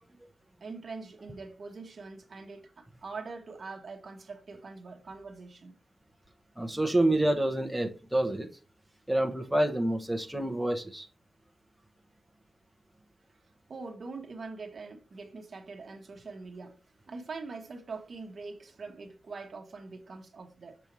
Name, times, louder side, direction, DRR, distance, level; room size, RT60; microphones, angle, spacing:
voice 1, 0.6-5.8 13.7-16.8 17.1-20.8, right 4 dB, 55° right, 1.1 m, -43 dB
voice 2, 6.6-8.5 9.1-11.1, right 1 dB, 5° right, 1.0 m, -27 dB
7.0 x 4.4 x 4.7 m
wide cardioid pair, 135°, 0 cm